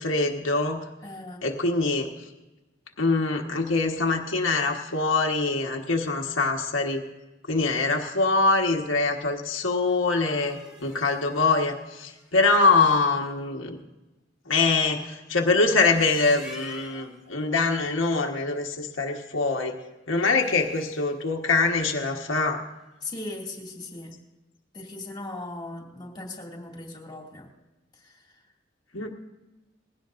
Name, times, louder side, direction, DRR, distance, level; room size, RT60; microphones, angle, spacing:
voice 1, 0.0-0.9 1.4-2.3 3.0-7.0 7.5-13.8 14.5-19.8 20.1-22.6 28.9-29.1, left 3 dB, 90° left, 1 dB, 1.4 m, -24 dB
voice 2, 1.0-1.4 23.0-24.2 24.7-27.5 27.9-28.4 28.9-29.1, left 2 dB, 20° left, 0 dB, 2.3 m, -39 dB
sound 1, 9.9-13.0 15.7-17.2 20.1-21.0, left 2 dB, 5° right, 2.2 m, -46 dB
20.5 x 16.5 x 2.6 m, 1.1 s
head